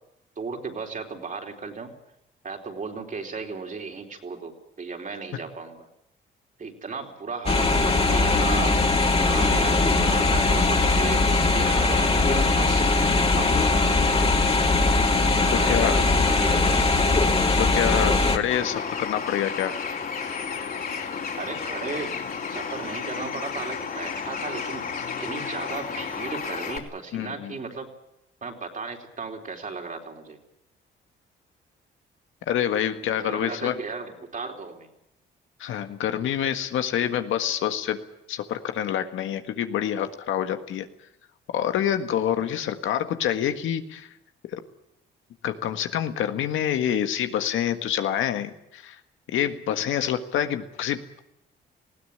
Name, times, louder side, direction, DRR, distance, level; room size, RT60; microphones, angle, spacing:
voice 1, 0.4-1.9 2.4-5.9 6.6-8.8 9.3-12.9 13.3-14.2 15.4-16.7 21.4-22.1 22.5-24.9 25.2-27.9 28.4-30.4 33.2-34.9, right 4 dB, 40° right, 2 dB, 4.0 m, -35 dB
sound 1, 7.5-18.4, left 3 dB, 30° left, 3.0 m, -20 dB
voice 2, 15.5-16.1 17.6-19.8 27.1-27.5 32.5-33.8 35.6-38.0 38.3-40.9 41.5-44.1 44.4-44.6 45.4-49.0 49.3-51.2, left 10 dB, 80° left, 7 dB, 1.7 m, -27 dB
Bird, 18.5-26.8, left 6 dB, 50° left, 4.2 m, -32 dB
20.0 x 16.5 x 9.9 m, 0.81 s
cardioid pair, 90°, 20 cm